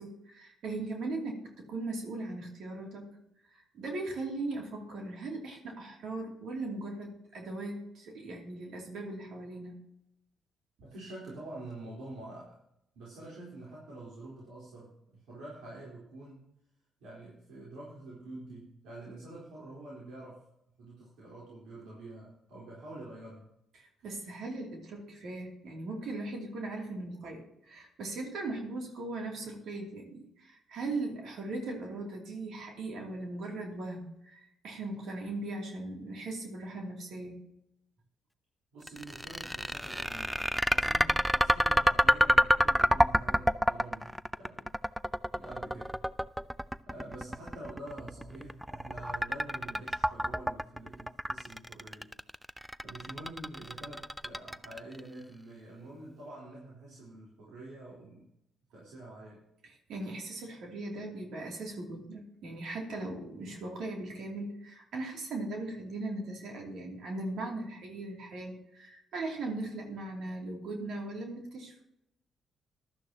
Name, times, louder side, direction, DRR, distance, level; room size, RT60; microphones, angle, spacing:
voice 1, 0.0-3.1 3.5-9.7 23.7-37.4 59.6-71.8, right 2 dB, 75° right, 0 dB, 2.8 m, -39 dB
voice 2, 10.8-12.6 12.9-16.4 17.0-20.4 20.8-23.5 38.7-44.7 45.3-45.9 46.9-52.1 52.4-52.5 52.8-58.3 58.7-59.4, right 1 dB, 90° right, -6 dB, 3.9 m, -47 dB
sound 1, 38.9-55.0, equal, ahead, 0.4 m, -28 dB
15.0 x 11.5 x 2.9 m, 0.79 s
cardioid pair, 90°, 0 cm